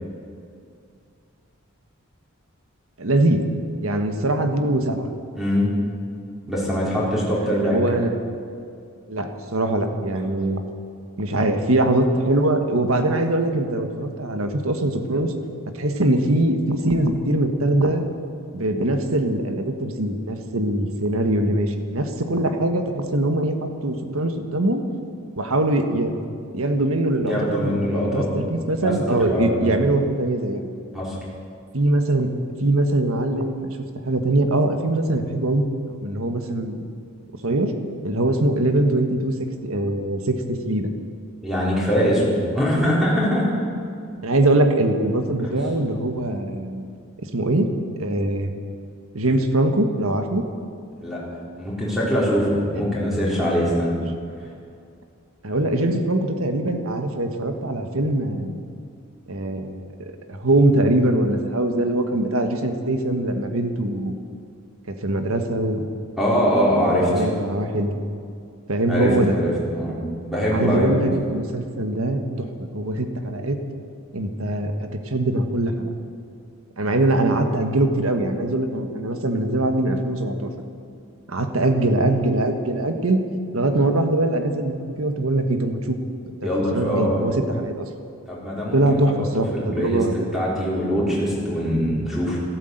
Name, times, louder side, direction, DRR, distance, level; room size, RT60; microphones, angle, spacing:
voice 1, 3.0-3.4 3.8-5.1 7.3-8.1 9.1-10.6 11.2-15.3 15.7-18.0 18.5-24.8 25.4-26.1 26.5-30.7 31.7-32.3 32.6-33.8 34.0-35.6 36.0-36.8 37.4-37.7 38.0-39.3 39.6-40.9 44.2-46.8 47.2-47.7 48.0-48.5 49.1-50.4 52.7-52.8 55.4-58.6 59.3-64.1 64.9-65.9 67.1-67.9 68.7-69.4 70.5-72.5 72.7-73.6 74.1-75.9 76.8-80.5 81.3-83.2 83.5-86.0 86.2-87.9 88.7-90.2, right 1 dB, 80° right, 6 dB, 1.5 m, -22 dB
voice 2, 5.3-5.7 6.5-7.8 27.2-28.2 28.7-29.7 30.9-31.2 41.4-43.5 51.0-51.2 51.5-53.9 66.2-67.3 68.9-69.9 70.2-71.0 86.4-87.2 88.3-89.0 89.5-90.0 90.3-92.4, equal, ahead, -6 dB, 4.2 m, -22 dB
13.5 x 13.0 x 8.0 m, 2.4 s
head